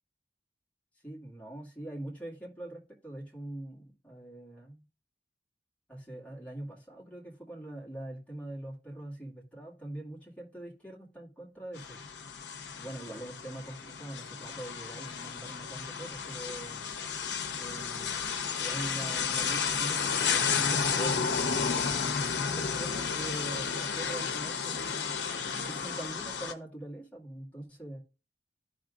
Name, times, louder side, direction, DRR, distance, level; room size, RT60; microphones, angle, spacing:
voice 1, 1.0-4.8 5.9-12.0 12.8-16.8 17.5-22.1 22.4-28.0, right 1 dB, 10° left, 2.0 m, -43 dB
sound 1, 11.8-26.5, left 6 dB, 85° left, 0.8 m, -32 dB
13.5 x 5.0 x 2.5 m
head